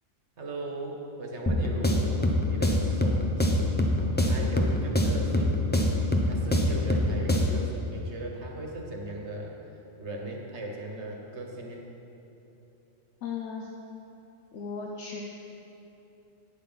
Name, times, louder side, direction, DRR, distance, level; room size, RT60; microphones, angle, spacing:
voice 1, 0.4-5.6 6.1-9.5 10.0-11.8, right 1 dB, 70° right, 1 dB, 1.5 m, -38 dB
sound 1, 1.5-7.7, left 1 dB, 10° left, 0.6 m, -25 dB
voice 2, 13.2-13.7 14.5-15.2, left 5 dB, 70° left, -1 dB, 1.1 m, -36 dB
11.0 x 9.3 x 4.0 m, 2.9 s
omnidirectional pair, 1.2 m